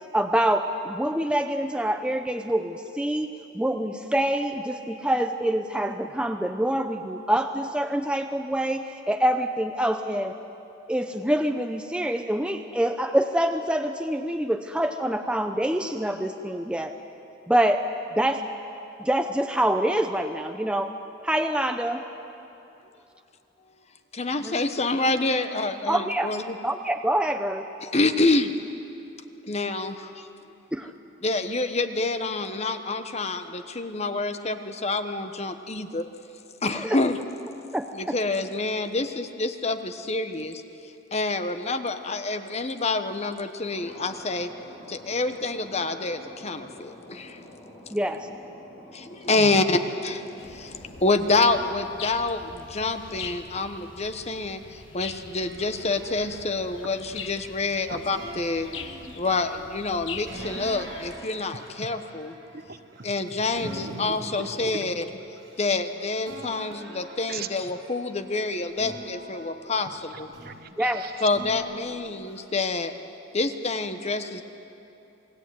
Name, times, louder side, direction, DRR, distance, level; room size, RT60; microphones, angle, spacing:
voice 1, 0.1-10.3 10.9-17.0 17.5-17.9 18.2-18.5 19.0-20.9 21.2-22.0 24.4-24.6 25.9-26.3 26.6-27.7 30.7-30.9 36.7-37.0 37.7-38.2 47.9-48.3 70.8-71.0, right 1 dB, 5° right, 5 dB, 0.7 m, -26 dB
voice 2, 24.1-26.6 27.8-28.5 29.5-30.3 31.2-36.1 36.6-37.2 37.9-40.6 41.1-44.5 44.9-47.4 48.9-50.2 50.5-58.7 59.2-62.3 63.0-65.0 65.6-70.3 71.2-73.0 73.3-74.4, left 3 dB, 35° left, 9 dB, 1.1 m, -27 dB
Thunder, 43.7-51.8, left 1 dB, 55° left, 4.7 m, -47 dB
voice 3, 49.3-49.6 57.9-58.0 62.5-63.1 63.7-64.9 67.3-67.5 70.1-71.3, right 4 dB, 50° right, 9 dB, 1.1 m, -39 dB
sound 1, 50.4-61.2, left 6 dB, 80° left, 1.5 m, -43 dB
sound 2, 55.4-57.6 58.1-59.5 60.3-63.2 63.5-65.9 66.2-68.2 68.7-70.7 71.3-72.4, right 1 dB, 65° right, 5.8 m, -43 dB
28.0 x 19.5 x 9.5 m, 2.8 s
head